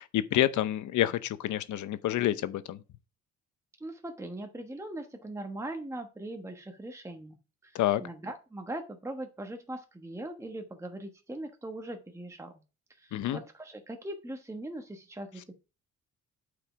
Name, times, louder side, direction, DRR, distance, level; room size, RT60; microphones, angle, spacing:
voice 1, 0.0-2.8 7.7-8.0 13.1-13.4, left 13 dB, 75° left, 0.8 m, -28 dB
voice 2, 3.8-7.4 7.6-12.5 13.0-15.5, right 1 dB, 10° right, 1.2 m, -40 dB
8.6 x 4.9 x 4.9 m
cardioid pair, 90°, 30 cm